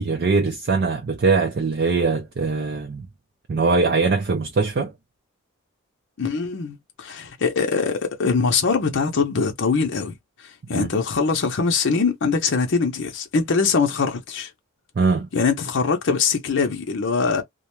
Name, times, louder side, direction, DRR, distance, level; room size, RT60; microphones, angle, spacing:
voice 1, 0.0-3.1 3.5-4.9 10.7-10.9 15.0-15.3, right 4 dB, 50° right, 0.4 m, -21 dB
voice 2, 6.2-10.1 10.7-14.5 15.3-17.4, left 5 dB, 60° left, 0.6 m, -22 dB
2.3 x 2.1 x 2.9 m
head